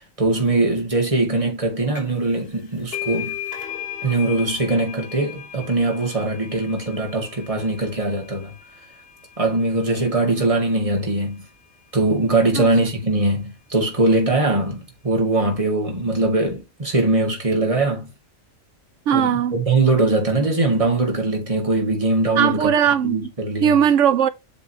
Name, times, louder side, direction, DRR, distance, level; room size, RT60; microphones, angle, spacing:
voice 1, 0.2-3.4 4.0-8.5 9.4-11.5 11.9-18.1 19.1-22.7 23.0-23.7, right 2 dB, 25° right, 2.1 m, -21 dB
sound 1, 2.0-2.3 2.5-9.8, left 9 dB, 45° left, 1.8 m, -36 dB
voice 2, 19.1-19.5 22.4-23.3 23.6-24.3, right 9 dB, 70° right, 0.9 m, -18 dB
7.8 x 4.1 x 2.9 m
omnidirectional pair, 1.4 m